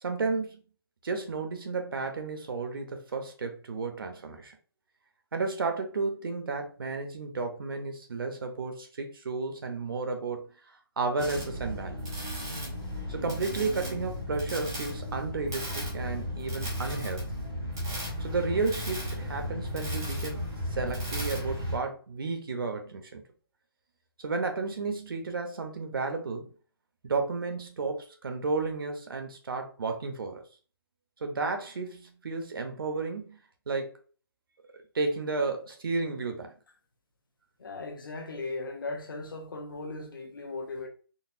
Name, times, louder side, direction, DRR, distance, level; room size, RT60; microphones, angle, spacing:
voice 1, 0.0-0.6 1.0-4.6 5.3-10.5 11.0-12.0 13.1-17.2 18.2-20.4 20.7-23.2 24.2-26.5 27.0-30.4 31.2-33.4 33.7-33.9 34.9-36.5, right 4 dB, 60° right, 0.7 m, -32 dB
sound 1, 11.2-21.8, equal, 10° right, 0.3 m, -35 dB
voice 2, 37.6-40.9, left 3 dB, 55° left, 0.8 m, -37 dB
3.9 x 2.1 x 2.5 m
hypercardioid pair, 180°, 13 cm